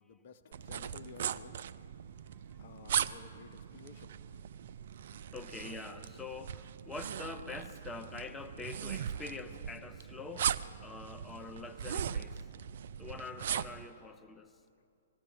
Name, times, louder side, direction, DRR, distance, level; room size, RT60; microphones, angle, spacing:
voice 1, 0.0-1.6 2.6-4.1, left 5 dB, 50° left, 8 dB, 0.9 m, -53 dB
sound 1, 0.5-13.9, right 9 dB, 55° right, 0.4 m, -39 dB
voice 2, 5.3-10.5 10.8-12.5 13.0-14.5, left 4 dB, 10° left, 8 dB, 0.7 m, -45 dB
21.0 x 15.0 x 4.6 m, 2.5 s
figure-of-eight pair, 120°, 0 cm